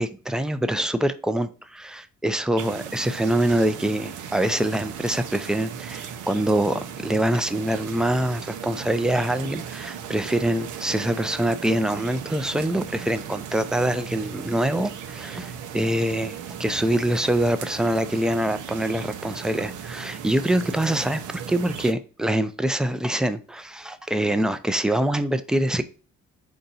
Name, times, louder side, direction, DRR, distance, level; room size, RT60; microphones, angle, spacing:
voice 1, 0.0-25.8, right 1 dB, ahead, 0.4 m, -25 dB
sound 1, 2.6-21.9, right 8 dB, 80° right, 0.7 m, -37 dB
4.5 x 2.7 x 3.9 m
cardioid pair, 90°, 30 cm